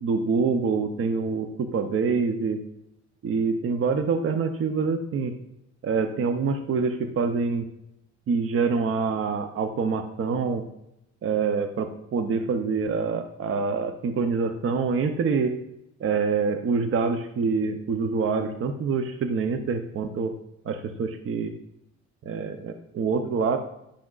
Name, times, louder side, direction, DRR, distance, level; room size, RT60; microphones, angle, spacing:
voice 1, 0.0-2.6 3.2-5.3 5.8-7.6 8.3-10.7 11.2-15.6 16.0-20.3 20.7-21.5 22.3-23.6, right 5 dB, 45° right, 8 dB, 0.6 m, -26 dB
9.8 x 6.1 x 2.4 m, 0.81 s
cardioid pair, 90°, 30 cm